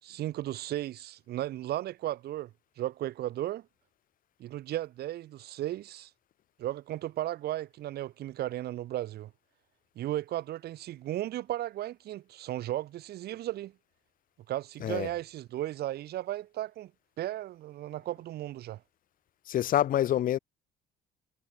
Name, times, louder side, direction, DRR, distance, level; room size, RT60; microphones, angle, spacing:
voice 1, 0.0-2.5 2.8-3.7 4.4-6.1 6.6-9.3 9.9-13.7 14.5-16.9 17.2-18.8, right 14 dB, 70° right, 4.9 m, -35 dB
voice 2, 19.5-20.4, left 11 dB, 55° left, 1.0 m, -26 dB
cardioid pair, 110°, 17 cm